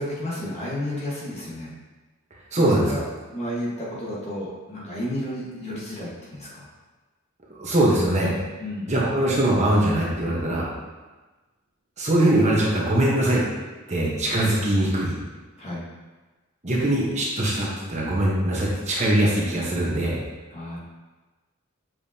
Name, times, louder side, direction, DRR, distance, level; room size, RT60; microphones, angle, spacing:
voice 1, 0.0-1.7 2.6-3.0 3.3-6.7 8.0-8.9 15.6-15.9 20.5-20.8, left 1 dB, 30° left, -6 dB, 1.5 m, -32 dB
voice 2, 2.5-2.9 7.5-8.3 8.9-10.7 12.0-13.4 13.9-15.1 16.6-20.2, right 1 dB, 30° right, -4 dB, 1.2 m, -22 dB
7.3 x 5.2 x 2.8 m, 1.2 s
head